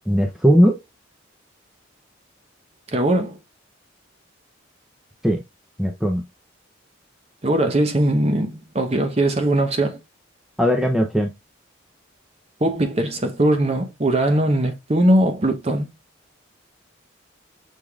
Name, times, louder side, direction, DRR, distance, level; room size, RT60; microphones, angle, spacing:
voice 1, 0.1-0.8 5.2-5.4 5.8-6.2 10.6-11.3, equal, ahead, 0.6 m, -18 dB
voice 2, 2.9-3.4 7.4-10.0 12.6-15.9, right 1 dB, 30° right, 0.9 m, -20 dB
6.2 x 3.5 x 2.4 m
head